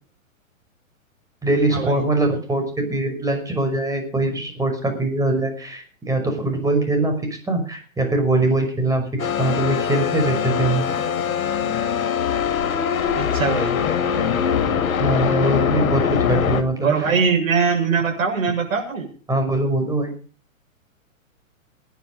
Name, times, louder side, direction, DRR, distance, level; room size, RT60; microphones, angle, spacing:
voice 1, 1.4-7.2 7.5-10.9 14.7-17.1 19.3-20.1, right 2 dB, 10° right, 5 dB, 5.7 m, -22 dB
sound 1, 9.2-16.6, left 8 dB, 75° left, 2.6 m, -22 dB
voice 2, 13.2-13.8 16.8-19.1, right 5 dB, 75° right, 1 dB, 7.1 m, -21 dB
19.0 x 10.5 x 5.3 m, 0.41 s
hypercardioid pair, 130°, 41 cm